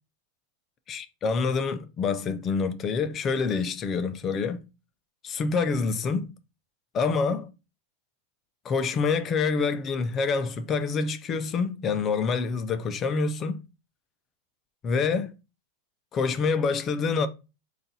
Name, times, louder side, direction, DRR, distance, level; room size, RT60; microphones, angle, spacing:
voice 1, 0.9-4.6 5.2-6.3 6.9-7.5 8.6-13.6 14.8-15.3 16.1-17.3, left 5 dB, 20° left, 0.4 m, -26 dB
4.0 x 2.3 x 4.0 m
supercardioid pair, 175°, 0 cm